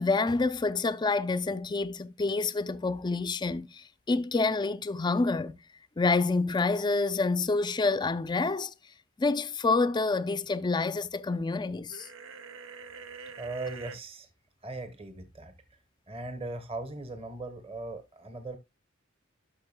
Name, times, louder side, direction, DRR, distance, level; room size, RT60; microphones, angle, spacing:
voice 1, 0.0-5.6 6.0-8.7 9.2-12.1, left 3 dB, 20° left, 0.4 m, -28 dB
sound 1, 11.9-14.0, right 5 dB, 85° right, 0.7 m, -45 dB
voice 2, 13.4-14.3 14.6-15.5 16.1-18.6, right 2 dB, 30° right, 1.1 m, -39 dB
11.5 x 6.1 x 2.2 m
head